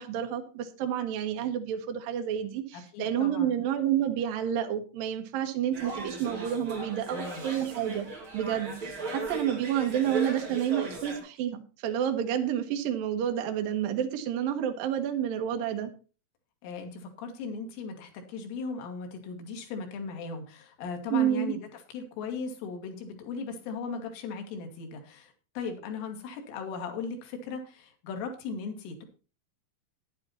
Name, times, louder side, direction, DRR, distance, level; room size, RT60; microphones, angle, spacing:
voice 1, 0.0-8.1 8.3-15.9 21.1-21.5, right 10 dB, 70° right, 6 dB, 2.3 m, -29 dB
voice 2, 2.7-3.6 7.1-7.5 16.6-29.0, left 5 dB, 85° left, 4 dB, 4.7 m, -38 dB
sound 1, 5.7-11.2, right 2 dB, 30° right, 3.8 m, -37 dB
11.5 x 10.5 x 4.3 m, 0.34 s
omnidirectional pair, 5.5 m